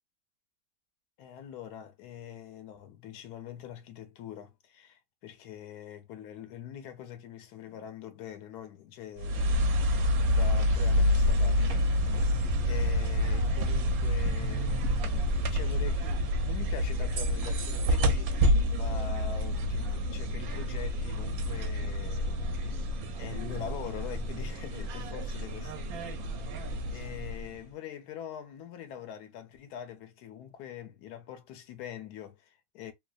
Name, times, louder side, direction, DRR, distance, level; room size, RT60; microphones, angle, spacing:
voice 1, 1.2-9.8 10.3-12.3 12.6-22.9 23.2-25.7 26.2-32.9, left 9 dB, 90° left, 1.2 m, -44 dB
sound 1, 9.2-27.6, equal, 70° right, 1.0 m, -28 dB
3.1 x 2.1 x 2.3 m
omnidirectional pair, 1.6 m